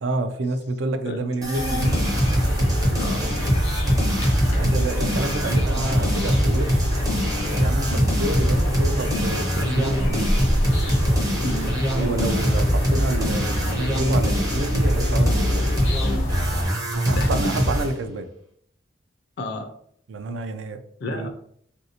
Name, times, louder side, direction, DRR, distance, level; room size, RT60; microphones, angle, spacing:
voice 1, 0.0-2.1 4.5-6.9 7.6-10.4 11.9-15.7 16.9-18.3 20.1-20.8 21.1-21.3, right 2 dB, 80° right, 8 dB, 0.4 m, -29 dB
sound 1, 1.4-17.9, equal, 20° right, 0.5 m, -23 dB
sound 2, 1.5-16.7, left 1 dB, 85° left, 0.8 m, -27 dB
voice 2, 3.0-3.4 7.9-8.1 11.4-11.8 17.1-17.3 19.4-19.7 21.0-21.3, left 1 dB, 55° left, 5 dB, 0.4 m, -30 dB
3.2 x 2.6 x 2.7 m, 0.66 s
head